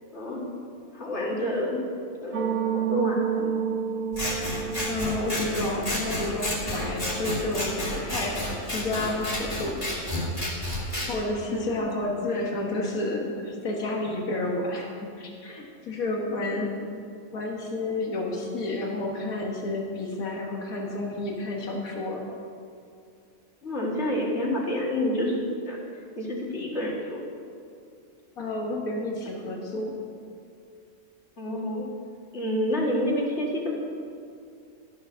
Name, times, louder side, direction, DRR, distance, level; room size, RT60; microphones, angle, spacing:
voice 1, 0.1-0.4 0.9-1.8 2.2-3.5 11.5-11.9 16.4-16.6 23.6-25.4 25.7-25.8 26.2-27.2 31.4-31.9 32.3-33.7, left 1 dB, 50° left, -2 dB, 2.3 m, -28 dB
sound 1, 2.3-8.6, right 7 dB, 80° right, 1.2 m, -31 dB
Scissors, 4.1-11.1, left 1 dB, 25° left, 2.3 m, -31 dB
voice 2, 4.9-8.4 8.7-9.8 11.1-16.7 17.3-22.2 28.4-30.0, left 2 dB, 80° left, 0 dB, 1.9 m, -30 dB
12.5 x 8.1 x 6.3 m, 2.5 s
omnidirectional pair, 1.5 m